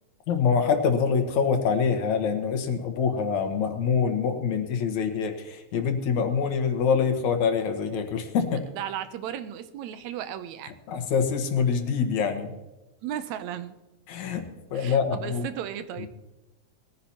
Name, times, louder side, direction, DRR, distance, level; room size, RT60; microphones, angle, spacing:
voice 1, 0.3-8.6 10.9-12.5 14.1-15.5, left 6 dB, 80° left, 6 dB, 2.6 m, -25 dB
voice 2, 8.4-10.7 13.0-13.8 14.7-16.1, right 10 dB, 80° right, 11 dB, 2.0 m, -35 dB
20.5 x 14.5 x 2.9 m, 1.0 s
omnidirectional pair, 3.3 m